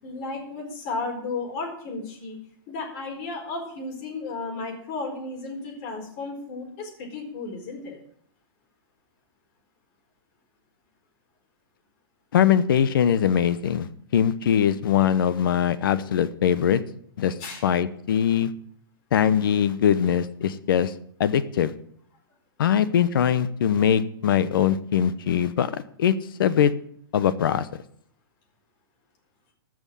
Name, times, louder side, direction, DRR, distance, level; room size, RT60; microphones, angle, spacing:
voice 1, 0.0-2.4 2.7-8.0 17.4-17.6, left 3 dB, 40° left, 1 dB, 4.3 m, -34 dB
voice 2, 12.3-13.9 14.1-16.8 17.2-17.3 17.6-18.5 19.1-20.9 21.2-21.7 22.6-26.1 26.4-26.7 27.1-27.7, left 9 dB, 75° left, 14 dB, 1.0 m, -21 dB
14.0 x 6.3 x 7.1 m, 0.64 s
hypercardioid pair, 145°, 12 cm